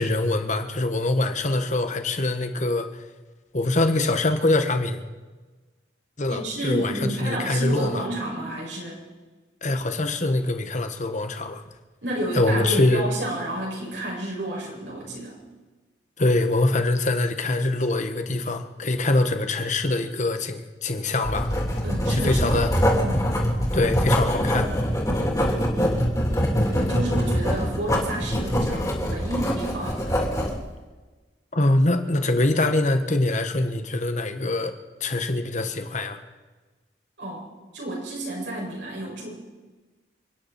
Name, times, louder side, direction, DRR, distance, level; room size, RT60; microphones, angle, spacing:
voice 1, 0.0-3.0 3.5-5.0 6.2-8.0 9.6-11.6 12.3-13.0 16.2-21.5 22.1-22.7 23.7-24.7 31.5-34.7 35.0-36.2, left 2 dB, 40° left, 7 dB, 1.5 m, -24 dB
voice 2, 6.3-9.0 12.0-15.4 21.8-22.6 23.0-23.3 26.6-30.2 37.2-37.4 37.7-39.3, right 1 dB, 75° right, -3 dB, 6.4 m, -30 dB
Writing, 21.2-30.6, equal, 20° left, 3.7 m, -24 dB
29.5 x 10.5 x 4.4 m, 1.3 s
head